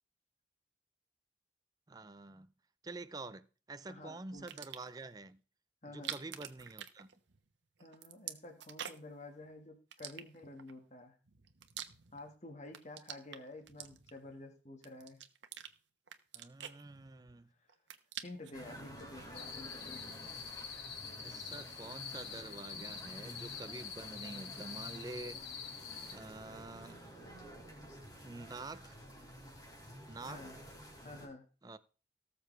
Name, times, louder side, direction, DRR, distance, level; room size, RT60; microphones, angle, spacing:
voice 1, 1.9-2.5 2.8-5.4 5.9-7.1 16.3-17.5 21.1-25.4 26.1-27.0 28.2-29.0 30.1-30.4 31.6-31.8, right 2 dB, 20° right, 0.5 m, -47 dB
voice 2, 3.9-4.5 5.8-6.2 7.8-11.2 12.1-15.2 18.2-20.0 30.3-30.6 31.0-31.5, left 2 dB, 40° left, 1.6 m, -50 dB
sound 1, 4.4-5.0 5.9-7.5 7.8-9.2 9.9-10.7 11.3-12.3 12.6-14.3 14.8-15.7 16.1-17.4 17.7-18.6, right 10 dB, 85° right, 1.1 m, -46 dB
sound 2, 18.5-31.3, equal, 20° left, 3.3 m, -51 dB
sound 3, 19.3-26.2, left 6 dB, 65° left, 2.4 m, -46 dB
18.5 x 6.8 x 3.3 m
head